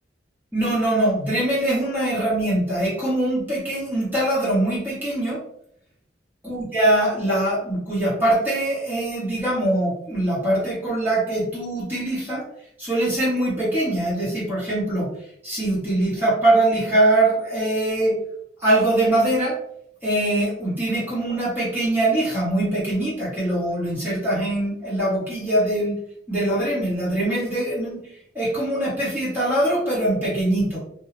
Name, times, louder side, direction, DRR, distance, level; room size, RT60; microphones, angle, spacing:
voice 1, 0.5-5.4 6.4-12.4 12.8-15.1 15.4-18.2 18.6-19.6 20.0-26.0 26.3-28.0 28.3-30.8, right 1 dB, 10° right, -8 dB, 1.3 m, -22 dB
2.6 x 2.3 x 3.1 m, 0.70 s
head